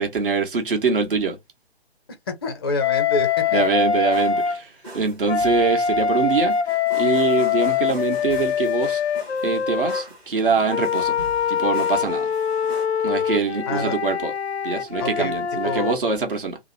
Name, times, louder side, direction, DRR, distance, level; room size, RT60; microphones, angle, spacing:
voice 1, 0.0-1.4 3.5-6.6 6.9-9.0 9.4-11.2 11.5-12.3 13.0-14.3 14.6-16.6, right 5 dB, 55° right, 1.2 m, -24 dB
voice 2, 2.3-3.6 13.7-14.0 15.0-15.3 15.6-16.0, left 2 dB, 25° left, 0.5 m, -27 dB
Wind instrument woodwind instrument, 2.8-4.6 5.3-10.0 10.7-15.9, left 7 dB, 90° left, 0.5 m, -23 dB
sound 1, 3.1-12.9, right 1 dB, 10° right, 0.7 m, -42 dB
2.8 x 2.0 x 2.6 m
figure-of-eight pair, 145°, 32 cm